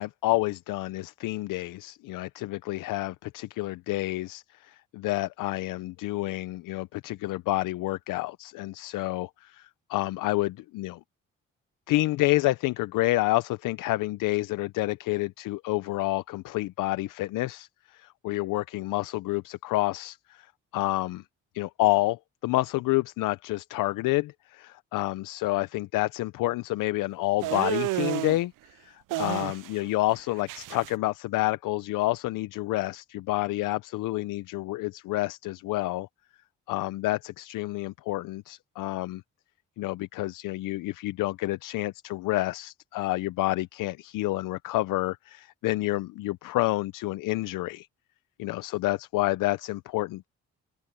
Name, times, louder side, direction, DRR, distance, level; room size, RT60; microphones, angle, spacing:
voice 1, 0.0-11.0 11.9-21.2 21.5-28.5 28.8-36.1 36.7-39.2 39.8-47.9 48.4-50.3, left 18 dB, 80° left, 0.7 m, -29 dB
sound 1, 27.4-28.4 29.1-29.9 30.1-30.9, right 17 dB, 80° right, 0.6 m, -31 dB
open air
supercardioid pair, 55°, 32 cm